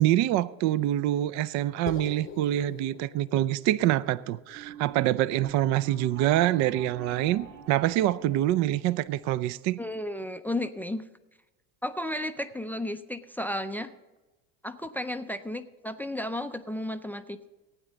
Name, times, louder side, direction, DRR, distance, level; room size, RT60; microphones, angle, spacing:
voice 1, 0.0-9.8, right 13 dB, 45° right, 0.5 m, -25 dB
sound 1, 1.9-6.2, left 7 dB, 30° left, 0.8 m, -45 dB
sound 2, 4.5-9.5, right 6 dB, 85° right, 1.8 m, -46 dB
voice 2, 9.8-11.0 11.8-13.9 14.6-17.5, left 1 dB, 5° left, 0.5 m, -33 dB
16.0 x 9.6 x 3.9 m
figure-of-eight pair, 70°, 40 cm